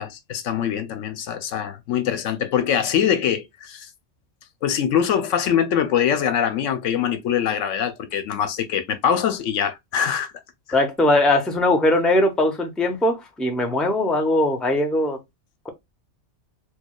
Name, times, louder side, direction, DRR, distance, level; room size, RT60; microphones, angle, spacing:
voice 1, 0.0-3.9 4.6-10.3 10.7-10.8, left 8 dB, 80° left, 1.0 m, -23 dB
voice 2, 10.7-15.2, left 1 dB, ahead, 0.6 m, -20 dB
4.6 x 2.3 x 2.2 m
omnidirectional pair, 1.3 m